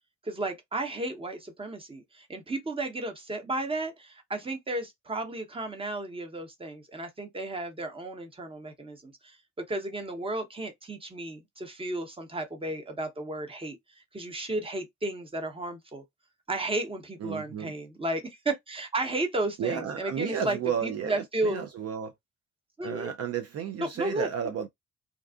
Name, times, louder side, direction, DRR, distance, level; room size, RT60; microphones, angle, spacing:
voice 1, 0.2-9.4 9.7-13.8 14.1-16.0 16.5-21.6 22.8-23.1 23.8-24.3, right 2 dB, 20° right, 0.9 m, -33 dB
voice 2, 17.2-17.7 19.6-22.1 22.8-24.7, right 8 dB, 55° right, 0.5 m, -32 dB
2.5 x 2.4 x 2.3 m
cardioid pair, 90°, 30 cm